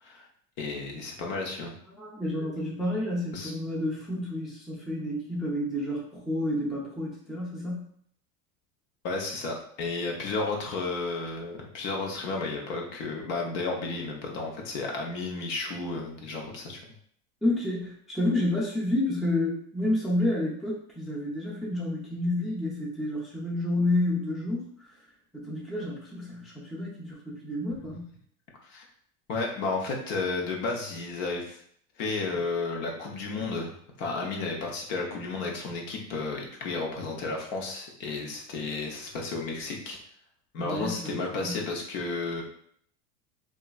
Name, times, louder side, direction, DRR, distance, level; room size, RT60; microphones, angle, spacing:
voice 1, 0.6-1.7 3.3-3.5 9.0-16.8 28.6-28.9 29.3-31.6 32.0-33.7 34.0-40.0 40.5-42.4, left 3 dB, 65° left, 0 dB, 0.9 m, -32 dB
voice 2, 1.9-7.8 17.4-24.7 25.3-28.1 40.6-41.6, left 1 dB, ahead, -5 dB, 0.4 m, -30 dB
2.9 x 2.4 x 2.3 m, 0.64 s
hypercardioid pair, 105°, 41 cm